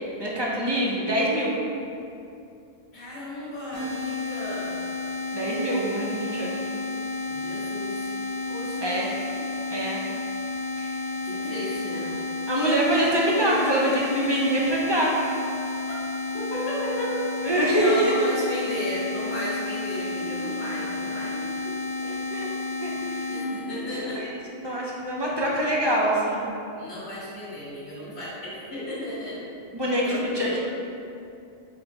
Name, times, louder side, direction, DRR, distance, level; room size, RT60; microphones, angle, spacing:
voice 1, 0.2-1.5 5.3-6.5 8.8-9.1 9.7-10.0 10.8-10.9 12.5-15.2 17.4-18.3 20.2-20.5 22.0-22.5 22.8-23.3 23.9-24.3 24.6-26.5 29.7-30.5, right 1 dB, 30° right, -4 dB, 0.5 m, -25 dB
voice 2, 2.9-4.7 7.3-8.2 8.5-8.9 9.4-9.5 11.2-12.1 16.3-17.2 17.7-21.4 23.3-24.3 24.6-24.9 26.8-29.4 29.9-30.6, equal, 85° left, -12 dB, 1.3 m, -34 dB
sound 1, 3.7-23.4, left 3 dB, 70° right, 1.9 m, -31 dB
4.2 x 3.2 x 3.9 m, 2.6 s
omnidirectional pair, 1.1 m